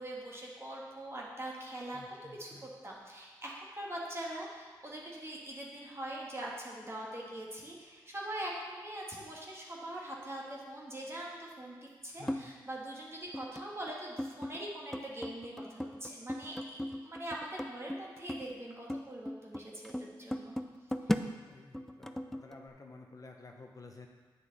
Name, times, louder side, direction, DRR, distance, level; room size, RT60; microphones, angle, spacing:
voice 1, 0.0-20.5, right 1 dB, 30° right, -4 dB, 1.8 m, -43 dB
voice 2, 1.9-2.7 12.1-12.5 21.1-24.1, left 3 dB, 40° left, 2 dB, 0.9 m, -52 dB
sound 1, 12.3-12.5 13.3-13.9 14.2-14.6 14.9-18.6 18.9-21.3 21.7-22.6, left 1 dB, 5° left, 0.5 m, -37 dB
8.1 x 6.2 x 4.1 m, 1.4 s
cardioid pair, 50°, 9 cm